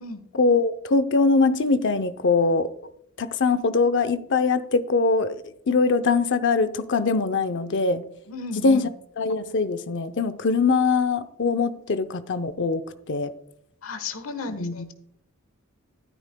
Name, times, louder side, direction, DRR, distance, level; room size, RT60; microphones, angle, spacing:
voice 1, 0.3-2.7 3.2-5.4 5.7-8.0 8.5-8.9 9.2-12.8 13.1-13.3 14.6-14.9, left 4 dB, 60° left, 0.7 m, -22 dB
voice 2, 8.3-8.8 13.8-14.9, left 3 dB, 80° left, 1.3 m, -34 dB
12.5 x 10.0 x 2.3 m
head